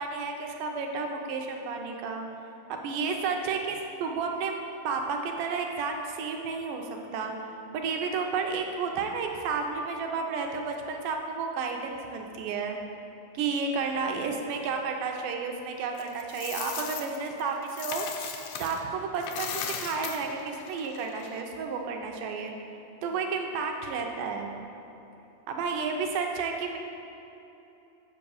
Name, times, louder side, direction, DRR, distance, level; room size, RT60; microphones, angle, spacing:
voice 1, 0.0-2.2 2.7-4.6 4.8-7.3 7.7-12.8 13.3-18.1 18.6-22.5 23.0-24.6 25.5-26.8, right 5 dB, 80° right, 3 dB, 2.1 m, -31 dB
Coin (dropping), 16.0-18.8 19.2-21.4, left 7 dB, 80° left, 2.0 m, -37 dB
7.6 x 5.3 x 6.3 m, 3.0 s
omnidirectional pair, 4.1 m